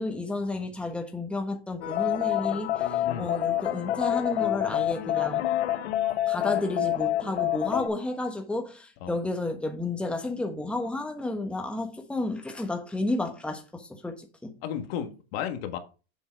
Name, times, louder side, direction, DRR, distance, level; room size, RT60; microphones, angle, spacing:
voice 1, 0.0-5.4 6.3-14.6, left 2 dB, 5° left, 1.3 m, -32 dB
sound 1, 1.8-7.9, left 12 dB, 85° left, 1.2 m, -27 dB
voice 2, 14.6-15.8, left 9 dB, 65° left, 1.6 m, -33 dB
7.3 x 5.4 x 4.6 m
supercardioid pair, 125°, 33 cm